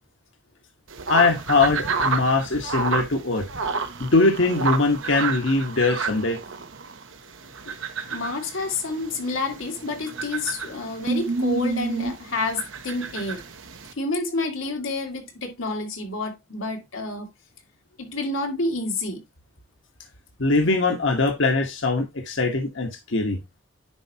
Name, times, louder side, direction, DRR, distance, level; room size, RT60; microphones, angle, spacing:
sound 1, 0.9-13.9, right 4 dB, 85° right, 1.1 m, -32 dB
voice 1, 1.1-3.4 4.0-6.4 20.4-23.4, left 3 dB, 75° left, 1.3 m, -21 dB
sound 2, 3.6-7.0 9.8-10.2 10.5-10.6 11.1-12.1, right 3 dB, 60° right, 0.6 m, -31 dB
voice 2, 8.1-13.4 14.0-17.3 18.0-19.2, left 2 dB, 90° left, 2.0 m, -29 dB
10.0 x 4.6 x 2.8 m
head